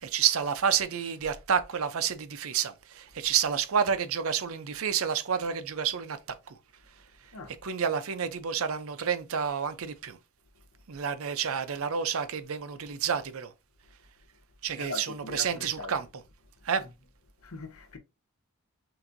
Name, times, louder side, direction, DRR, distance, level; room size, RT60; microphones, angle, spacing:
voice 1, 0.0-6.6 6.9-7.3 7.6-10.2 10.9-13.5 14.6-16.1 16.6-16.8, right 7 dB, 70° right, 0.6 m, -29 dB
voice 2, 14.8-15.9 17.4-18.0, left 3 dB, 70° left, 0.8 m, -40 dB
5.8 x 2.7 x 2.6 m
head